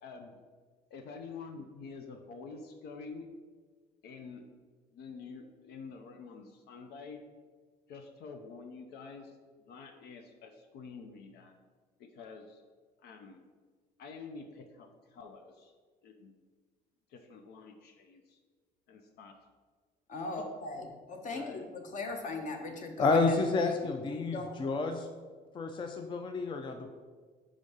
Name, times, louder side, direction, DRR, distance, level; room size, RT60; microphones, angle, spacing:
voice 1, 0.0-0.4 0.9-3.3 4.0-4.4 4.9-7.2 7.9-11.5 12.0-12.6 13.0-13.5 14.0-15.7 16.0-16.3 17.1-18.4 18.9-19.3 20.2-20.4 21.3-21.7, left 4 dB, 75° left, 5 dB, 0.6 m, -48 dB
voice 2, 20.1-23.7 24.1-24.7, left 3 dB, 50° left, 4 dB, 1.0 m, -39 dB
voice 3, 23.0-25.1 25.5-26.9, left 3 dB, 30° left, 5 dB, 0.4 m, -30 dB
5.1 x 3.6 x 5.4 m, 1.5 s
cardioid pair, 110°, 17 cm